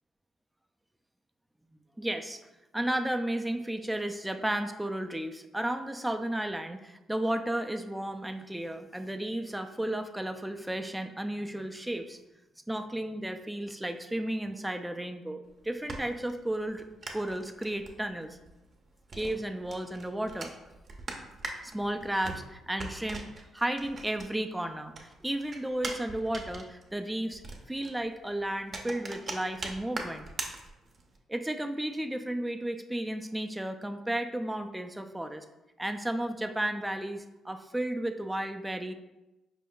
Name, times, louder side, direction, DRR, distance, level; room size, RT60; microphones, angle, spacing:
voice 1, 2.0-2.4 2.7-12.2 12.7-16.8 17.1-18.4 19.1-20.5 21.6-23.3 23.5-27.4 27.7-30.3 31.3-35.4 35.8-38.9, right 1 dB, 10° right, 6 dB, 0.4 m, -33 dB
sound 1, 15.4-24.6 24.9-31.2, right 3 dB, 40° right, 0.6 m, -42 dB
5.1 x 2.2 x 3.7 m, 0.99 s
cardioid pair, 90°, 0 cm